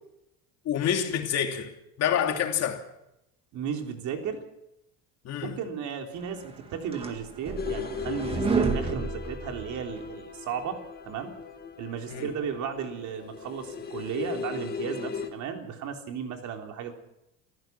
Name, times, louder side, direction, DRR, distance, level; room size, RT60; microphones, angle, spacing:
voice 1, 0.6-2.8 5.2-5.6 12.1-12.3, left 9 dB, 50° left, 2.8 m, -28 dB
voice 2, 3.5-4.4 5.4-11.3 11.8-16.9, right 7 dB, 55° right, 3.7 m, -35 dB
sound 1, 6.5-10.1, right 4 dB, 15° right, 2.0 m, -30 dB
sound 2, 7.6-15.3, left 6 dB, 25° left, 2.1 m, -37 dB
28.0 x 15.5 x 6.0 m
cardioid pair, 165°, 34 cm